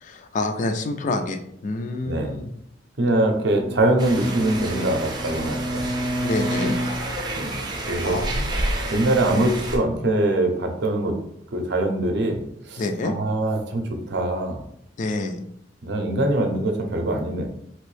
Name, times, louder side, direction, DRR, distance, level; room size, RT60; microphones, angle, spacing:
voice 1, 0.0-2.5 6.2-6.7 8.0-8.5 12.8-13.2 15.0-15.4, left 2 dB, 40° left, 7 dB, 0.3 m, -27 dB
voice 2, 2.0-2.4 3.0-5.8 7.3-8.2 8.9-11.2 11.5-12.4 12.7-14.6 15.8-17.5, right 1 dB, 65° right, 3 dB, 0.6 m, -23 dB
Bowed string instrument, 3.3-7.7, equal, 75° left, 1.1 m, -30 dB
sound 1, 4.0-9.8, right 1 dB, 25° right, 0.5 m, -30 dB
3.0 x 2.6 x 3.2 m, 0.72 s
head